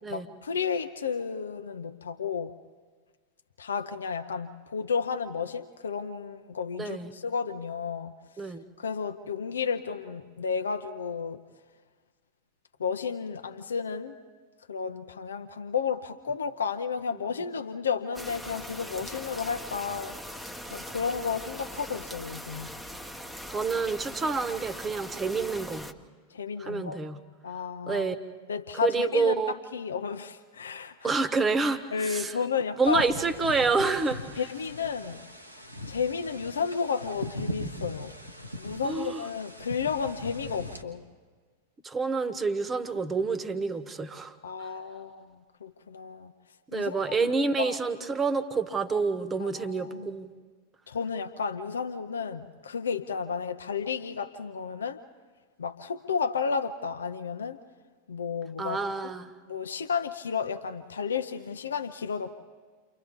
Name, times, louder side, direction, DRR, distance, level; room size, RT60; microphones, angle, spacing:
voice 1, 0.1-2.5 3.6-8.1 8.8-11.4 12.8-14.2 14.7-20.2 20.7-22.7 26.3-27.0 27.4-28.1 28.5-31.2 31.9-33.1 34.4-35.2 35.9-38.1 38.6-41.0 44.4-45.3 45.6-46.3 46.7-47.3 47.6-47.8 49.4-50.1 50.9-55.0 55.6-57.6 58.1-58.8 59.5-62.3, left 6 dB, 70° left, 7 dB, 0.7 m, -32 dB
voice 2, 6.8-7.1 8.4-8.6 23.5-25.9 26.6-27.2 27.9-28.1 28.8-29.5 31.0-32.3 32.8-34.2 38.8-39.3 41.8-44.7 46.7-50.3 58.6-59.3, right 4 dB, 20° right, 12 dB, 1.2 m, -28 dB
sound 1, 18.1-25.9, equal, ahead, 0.9 m, -41 dB
sound 2, 32.9-40.8, equal, 90° right, 1.4 m, -40 dB
29.5 x 24.0 x 3.6 m, 1.5 s
figure-of-eight pair, 90°, 0 cm